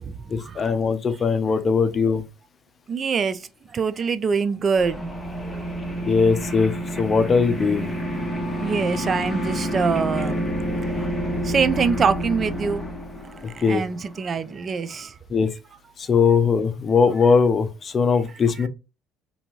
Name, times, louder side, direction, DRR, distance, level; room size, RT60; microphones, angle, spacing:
voice 1, 0.3-2.2 6.1-7.9 13.6-13.8 15.3-15.5 16.0-18.7, left 5 dB, 40° left, 0.5 m, -20 dB
voice 2, 2.9-3.3 3.7-4.9 8.6-10.4 11.5-12.8 13.7-15.0, right 5 dB, 40° right, 0.3 m, -23 dB
sound 1, 4.8-14.7, equal, 5° left, 1.1 m, -29 dB
2.7 x 2.6 x 2.9 m
supercardioid pair, 85°, 0 cm